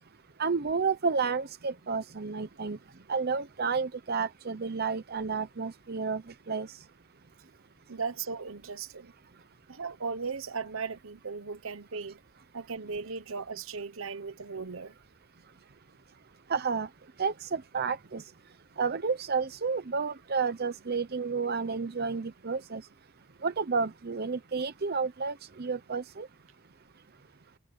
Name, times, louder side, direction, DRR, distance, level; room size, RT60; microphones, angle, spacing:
voice 1, 0.4-2.8 3.1-6.7 16.5-16.9 17.2-18.2 18.8-22.8 23.4-26.3, right 5 dB, 50° right, 0.8 m, -31 dB
voice 2, 7.9-9.1 9.7-12.2 12.5-15.0, right 5 dB, 70° right, 1.0 m, -37 dB
head